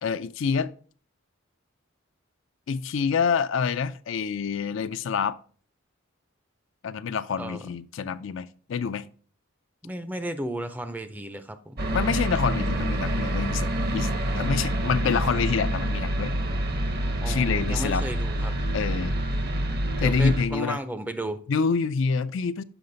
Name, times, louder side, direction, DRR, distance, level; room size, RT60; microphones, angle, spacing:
voice 1, 0.0-0.7 2.7-5.4 6.8-9.1 11.9-16.3 17.3-18.0 18.7-19.1 20.0-20.8 21.5-22.6, left 5 dB, 65° left, 0.4 m, -27 dB
voice 2, 9.8-11.8 17.2-18.5 20.0-21.4, right 1 dB, 10° right, 0.5 m, -34 dB
sound 1, 11.8-20.4, right 1 dB, 50° right, 0.9 m, -27 dB
7.0 x 5.8 x 3.9 m
head